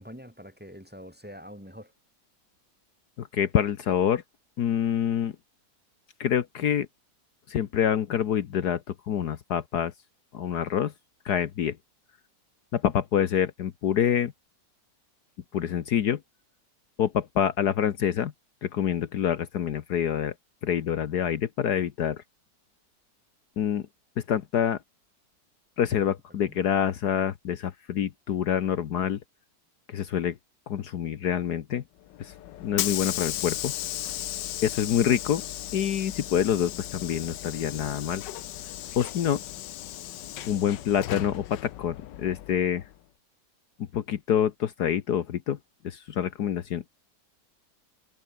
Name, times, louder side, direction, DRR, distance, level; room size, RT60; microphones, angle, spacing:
voice 1, 0.0-1.9 26.3-26.6, equal, 5° right, 3.3 m, -45 dB
voice 2, 3.2-4.2 4.6-5.3 6.2-6.9 7.5-9.9 10.3-10.9 11.2-11.8 12.7-14.3 15.5-16.2 17.0-18.3 18.6-20.3 20.6-22.2 23.6-23.8 24.2-24.8 25.8-29.2 29.9-30.4 30.7-31.8 32.2-32.3 32.6-33.7 34.6-35.4 35.7-38.2 39.0-39.4 40.5-42.8 43.8-45.6 45.8-47.0, left 9 dB, 65° left, 1.6 m, -26 dB
Hiss / Sliding door, 32.1-42.9, left 13 dB, 85° left, 1.4 m, -36 dB
omnidirectional pair, 1.9 m